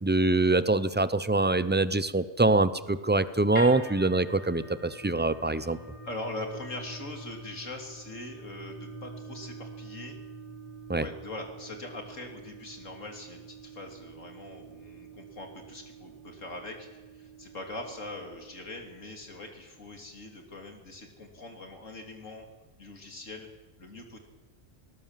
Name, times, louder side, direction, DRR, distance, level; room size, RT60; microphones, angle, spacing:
voice 1, 0.0-5.8 10.9-11.0, right 2 dB, 15° right, 15 dB, 0.4 m, -24 dB
sound 1, 3.5-19.8, right 2 dB, 25° left, 3.4 m, -46 dB
voice 2, 5.4-5.7 6.0-10.2 11.0-22.5 22.8-23.5 23.8-24.2, left 2 dB, 90° left, 3 dB, 3.5 m, -42 dB
19.0 x 19.0 x 7.5 m, 1.2 s
omnidirectional pair, 1.3 m